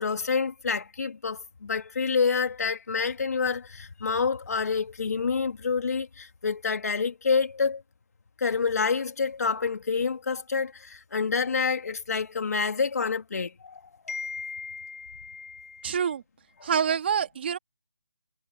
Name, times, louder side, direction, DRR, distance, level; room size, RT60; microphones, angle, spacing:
voice 1, 0.0-7.8 8.4-15.9 16.6-16.7, left 5 dB, 55° left, 2.9 m, -28 dB
voice 2, 15.8-16.2 16.6-17.6, right 7 dB, 35° right, 2.6 m, -26 dB
hypercardioid pair, 170°, 10 cm